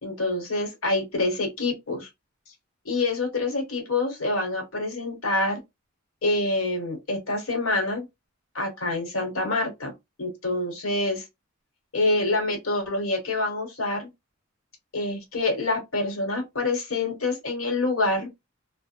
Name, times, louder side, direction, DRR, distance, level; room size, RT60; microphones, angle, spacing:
voice 1, 0.0-2.1 2.8-5.6 6.2-8.0 8.5-9.9 10.2-11.2 11.9-14.1 14.9-18.3, left 2 dB, 85° left, 1.0 m, -26 dB
2.4 x 2.0 x 2.8 m
head